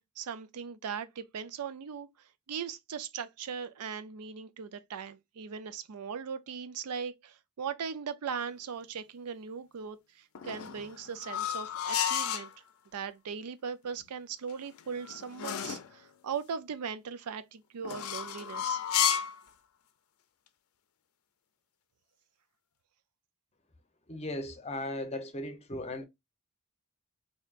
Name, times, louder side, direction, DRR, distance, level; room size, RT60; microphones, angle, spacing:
voice 1, 0.0-12.5 12.9-18.8, right 6 dB, 90° right, 0.5 m, -39 dB
sound 1, 10.3-12.5 14.5-15.9 17.8-19.4, left 9 dB, 70° left, 0.5 m, -32 dB
voice 2, 24.1-26.0, left 1 dB, 30° left, 0.6 m, -37 dB
4.5 x 2.8 x 2.4 m
head